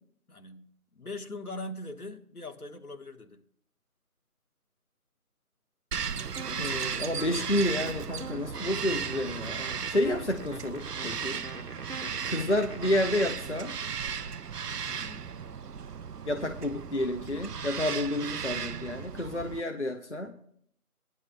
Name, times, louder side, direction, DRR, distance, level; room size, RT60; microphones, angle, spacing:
voice 1, 0.3-3.4 14.8-15.4, left 2 dB, 70° left, 6 dB, 1.4 m, -42 dB
Bird vocalization bird call bird song, 5.9-19.6, right 7 dB, 85° right, 0.6 m, -36 dB
sound 1, 6.3-13.0, right 2 dB, 65° right, 1.5 m, -43 dB
voice 2, 6.6-11.4 12.3-13.7 16.3-20.4, left 1 dB, 50° left, 5 dB, 0.7 m, -30 dB
19.0 x 11.0 x 2.2 m, 0.63 s
figure-of-eight pair, 170°, 46 cm